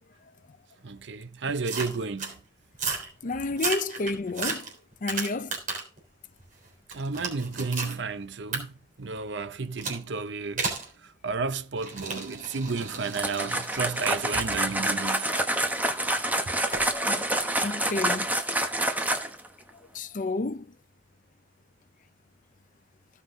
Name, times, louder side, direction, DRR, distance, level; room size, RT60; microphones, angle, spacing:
voice 1, 0.8-2.4 6.9-8.7 9.0-10.7 11.0-15.5, right 4 dB, 65° right, 0.7 m, -32 dB
sound 1, 1.6-2.3 2.7-3.1 3.5-6.0 6.4-8.0 8.5-8.6 9.8-10.0 10.6-10.9 11.8-15.7 16.7-16.9, right 4 dB, 45° right, 3.5 m, -34 dB
voice 2, 3.2-4.7 5.0-5.6 17.1-17.2 17.6-18.3 19.9-20.7, left 3 dB, 45° left, 0.6 m, -30 dB
sound 2, 13.1-19.5, right 1 dB, 10° right, 1.2 m, -27 dB
15.5 x 5.8 x 3.7 m
head